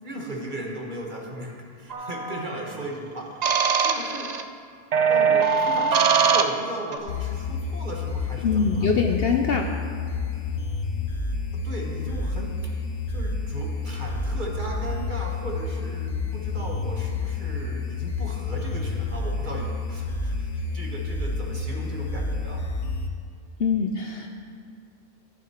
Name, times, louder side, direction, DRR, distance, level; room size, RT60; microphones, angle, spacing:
voice 1, 0.0-4.3 5.1-8.9 11.5-12.7 13.1-22.7, right 1 dB, 40° right, -1 dB, 1.4 m, -37 dB
sound 1, 1.9-2.4 3.4-4.4 4.9-7.0, right 6 dB, 75° right, 0.3 m, -22 dB
sound 2, 7.1-23.1, left 3 dB, 80° left, 1.2 m, -29 dB
voice 2, 8.4-9.7 23.6-24.3, left 5 dB, 55° left, 2 dB, 0.7 m, -23 dB
14.5 x 9.8 x 3.0 m, 2.2 s
omnidirectional pair, 1.4 m